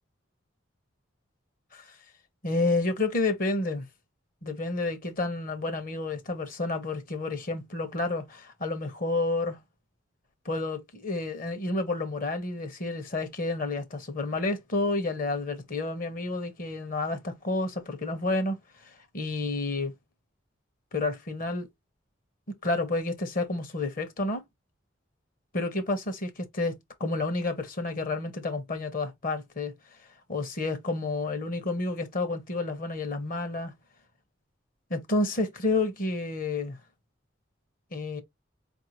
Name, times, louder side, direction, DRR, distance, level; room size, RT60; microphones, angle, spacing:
voice 1, 2.4-3.8 4.4-9.6 10.4-18.6 19.1-19.9 20.9-21.7 22.5-24.4 25.5-29.7 30.3-33.7 34.9-36.8 37.9-38.2, left 2 dB, 45° left, 0.9 m, -30 dB
4.6 x 2.6 x 2.9 m
head